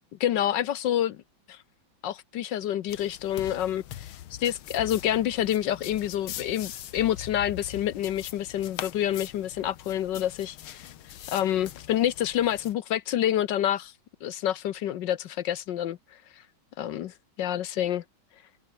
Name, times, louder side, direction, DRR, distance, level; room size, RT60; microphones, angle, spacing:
voice 1, 0.2-1.2 1.5-1.6 2.0-4.1 4.4-10.9 11.3-13.9 14.2-16.0 16.8-18.0, left 11 dB, 70° left, 1.3 m, -28 dB
sound 1, 2.9-12.7, left 12 dB, 90° left, 1.9 m, -42 dB
open air
omnidirectional pair, 2.2 m